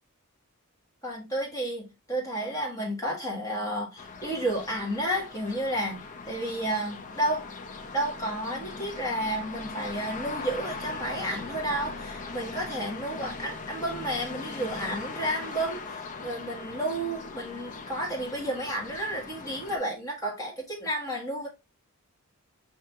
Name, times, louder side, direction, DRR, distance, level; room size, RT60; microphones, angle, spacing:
voice 1, 1.0-7.5 7.9-21.5, right 1 dB, 15° left, 1.5 m, -31 dB
sound 1, 4.0-19.8, left 3 dB, 35° left, 0.5 m, -40 dB
5.6 x 2.8 x 2.4 m
head